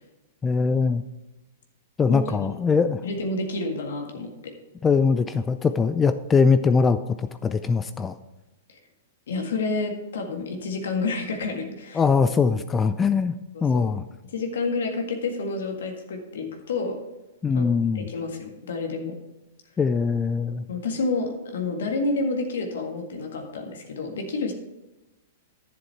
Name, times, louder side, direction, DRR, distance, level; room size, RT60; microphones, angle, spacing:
voice 1, 0.4-1.0 2.0-3.0 4.8-8.1 11.9-13.3 13.6-14.0 17.4-18.1 19.8-20.6, left 5 dB, 20° left, 11 dB, 0.4 m, -22 dB
voice 2, 2.1-2.5 3.0-4.3 8.7-8.8 9.3-12.0 13.5-13.8 14.3-17.0 17.5-17.6 17.9-19.1 20.7-24.5, left 3 dB, 70° left, 3 dB, 1.8 m, -29 dB
11.0 x 7.2 x 4.5 m, 1.0 s
hypercardioid pair, 110°, 0 cm